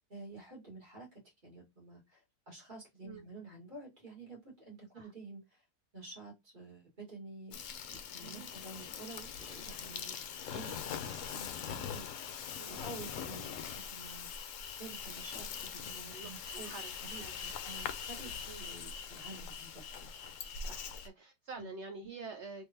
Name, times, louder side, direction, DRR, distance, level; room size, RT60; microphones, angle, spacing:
voice 1, 0.1-5.6 5.9-10.2 10.5-10.8 11.0-12.4 12.6-14.3 14.8-16.7 17.0-18.3 18.6-20.1 21.6-21.7, right 3 dB, 30° right, 1.8 m, -50 dB
Insect, 7.5-21.1, left 7 dB, 65° left, 0.9 m, -42 dB
voice 2, 8.2-8.5 12.6-12.8 16.1-16.9 17.2-17.3 18.5-18.6 20.7-22.7, right 4 dB, 65° right, 0.7 m, -47 dB
3.5 x 3.2 x 2.8 m
omnidirectional pair, 1.7 m